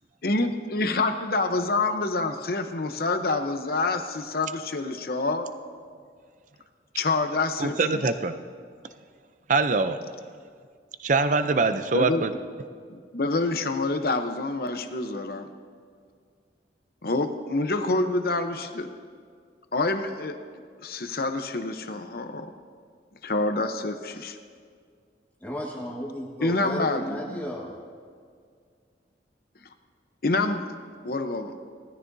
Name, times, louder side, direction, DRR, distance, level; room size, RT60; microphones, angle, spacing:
voice 1, 0.2-5.5 6.9-8.0 11.9-12.3 12.9-15.5 17.0-18.9 19.7-20.3 20.8-22.5 23.2-24.4 26.4-27.5 30.2-30.7 31.0-31.5, left 2 dB, 60° left, 7 dB, 0.8 m, -27 dB
voice 2, 7.6-8.3 9.5-10.0 11.0-12.3, right 3 dB, 45° right, 10 dB, 0.5 m, -23 dB
voice 3, 25.4-27.7, equal, 10° left, -3 dB, 1.6 m, -34 dB
19.0 x 13.5 x 2.7 m, 2.1 s
head